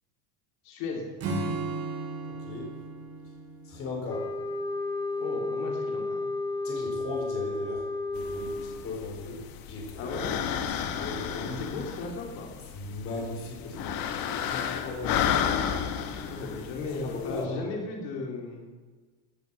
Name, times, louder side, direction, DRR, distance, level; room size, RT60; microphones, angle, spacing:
voice 1, 0.6-1.1 5.2-6.3 10.0-10.3 11.4-12.5 16.0-18.7, left 3 dB, 65° left, 0 dB, 3.6 m, -36 dB
Acoustic guitar / Strum, 1.2-4.7, right 3 dB, 30° right, 3.6 m, -35 dB
voice 2, 2.3-2.7 3.6-4.3 6.6-9.4 9.7-11.6 12.7-15.2 17.0-17.6, left 3 dB, 25° left, -1 dB, 4.4 m, -38 dB
sound 1, 4.1-9.0, left 2 dB, 10° left, 0.6 m, -32 dB
sound 2, 8.2-17.4, left 8 dB, 45° left, 1.4 m, -33 dB
16.5 x 10.5 x 7.1 m, 1.4 s
cardioid pair, 175°, 49 cm